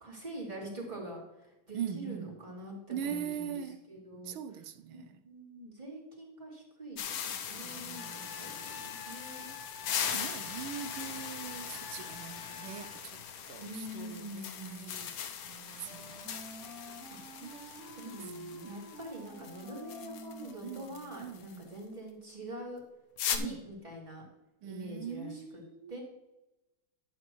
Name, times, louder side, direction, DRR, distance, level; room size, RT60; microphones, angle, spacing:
voice 1, 0.0-4.4 4.9-9.5 13.6-14.9 17.1-17.2 18.0-22.8 23.2-24.2 24.6-25.6 25.9-26.0, equal, 20° right, 2.9 m, -45 dB
voice 2, 1.7-2.4 2.9-3.8 4.2-5.2 7.5-8.8 10.1-15.1 15.7-16.3 17.4-18.8 20.6-20.9 21.2-21.7 23.4-23.6 24.6-26.0, right 9 dB, 80° right, 1.5 m, -42 dB
sound 1, 7.0-21.6 23.2-23.4, left 8 dB, 70° left, 1.5 m, -40 dB
Trumpet, 7.9-13.0, left 6 dB, 55° left, 1.2 m, -49 dB
Wind instrument woodwind instrument, 15.4-21.5, right 2 dB, 55° right, 2.7 m, -50 dB
12.5 x 8.4 x 3.1 m
omnidirectional pair, 2.3 m